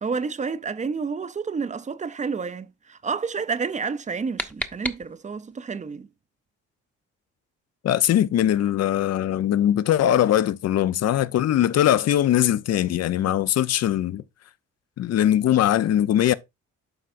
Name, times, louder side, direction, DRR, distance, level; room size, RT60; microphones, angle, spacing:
voice 1, 0.0-6.1, right 5 dB, 25° right, 0.5 m, -30 dB
sound 1, 3.9-5.6, equal, 5° left, 0.8 m, -35 dB
voice 2, 7.8-14.2 15.0-16.3, left 11 dB, 55° left, 0.6 m, -21 dB
11.5 x 4.6 x 2.5 m
cardioid pair, 90°, 30 cm